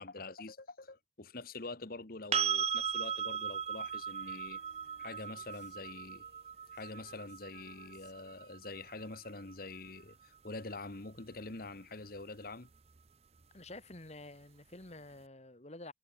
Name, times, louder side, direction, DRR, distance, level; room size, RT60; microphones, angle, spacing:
voice 1, 0.0-4.6 5.0-6.2 6.7-12.7, left 3 dB, 55° left, 1.4 m, -45 dB
sound 1, 2.3-10.1 13.0-13.1, right 8 dB, 35° right, 0.6 m, -38 dB
Female singing, 4.1-11.1 12.2-12.3, left 3 dB, 70° left, 5.7 m, -67 dB
voice 2, 13.5-15.9, left 2 dB, 40° left, 2.3 m, -49 dB
head